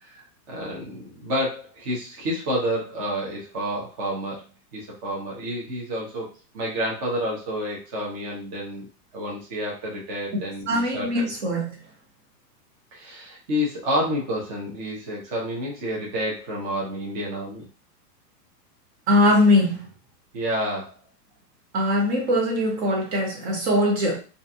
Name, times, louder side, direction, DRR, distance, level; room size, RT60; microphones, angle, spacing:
voice 1, 0.0-4.4 4.7-11.3 12.9-17.7 20.3-20.9, equal, 25° right, 0.6 m, -29 dB
voice 2, 10.7-11.8 19.1-19.8 21.7-24.2, left 1 dB, 40° right, 1.0 m, -21 dB
2.4 x 2.2 x 2.7 m
hypercardioid pair, 155°, 49 cm